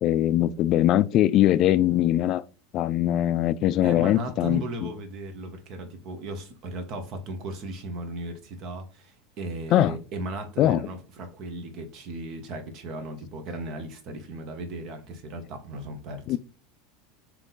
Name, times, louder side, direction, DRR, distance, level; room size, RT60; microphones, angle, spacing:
voice 1, 0.0-2.4 2.7-4.9 9.7-9.9 10.6-10.8 16.3-16.4, left 12 dB, 50° left, 0.4 m, -22 dB
voice 2, 3.8-16.4, right 1 dB, 55° right, 1.1 m, -36 dB
3.6 x 3.0 x 3.9 m
hypercardioid pair, 95°, 0 cm